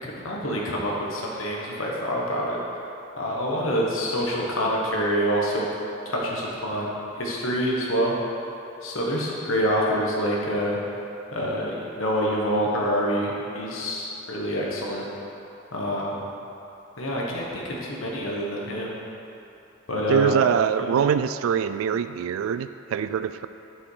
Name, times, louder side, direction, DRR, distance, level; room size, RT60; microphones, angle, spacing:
voice 1, 0.0-2.6 3.2-5.7 6.0-8.2 8.8-10.8 11.3-15.1 15.7-16.2 17.0-18.9 19.9-20.3 20.8-20.9, equal, 85° left, -3 dB, 1.4 m, -26 dB
voice 2, 20.1-23.5, right 7 dB, 85° right, 12 dB, 0.3 m, -23 dB
6.9 x 5.5 x 4.9 m, 2.9 s
head